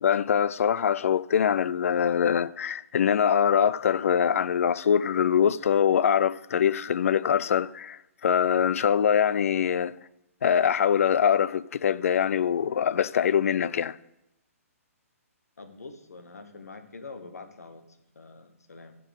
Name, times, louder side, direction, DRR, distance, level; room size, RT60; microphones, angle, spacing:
voice 1, 0.0-9.9 10.4-14.0, left 8 dB, 65° left, 0.4 m, -23 dB
voice 2, 15.6-17.8 18.1-19.0, left 3 dB, 90° left, 1.2 m, -45 dB
11.0 x 4.6 x 6.3 m
hypercardioid pair, 140°, 8 cm